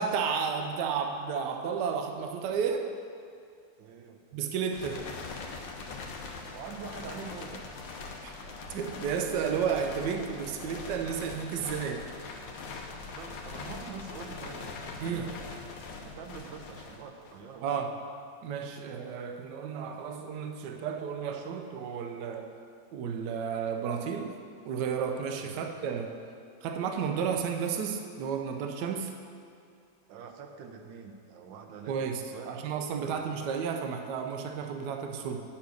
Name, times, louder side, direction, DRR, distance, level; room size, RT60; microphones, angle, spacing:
voice 1, 0.0-2.9 4.3-5.1 8.2-12.0 15.0-15.3 17.6-17.9 18.4-22.5 22.9-24.3 24.6-26.1 26.6-29.1 31.9-35.4, right 6 dB, 70° right, 4 dB, 1.2 m, -32 dB
voice 2, 3.8-4.2 6.5-7.7 13.0-15.5 16.0-17.9 25.4-25.7 30.1-32.7 33.0-33.5, right 5 dB, 90° right, 4 dB, 1.5 m, -45 dB
sound 1, 4.7-17.6, left 4 dB, 85° left, 1.6 m, -42 dB
8.7 x 5.9 x 6.3 m, 2.3 s
omnidirectional pair, 2.0 m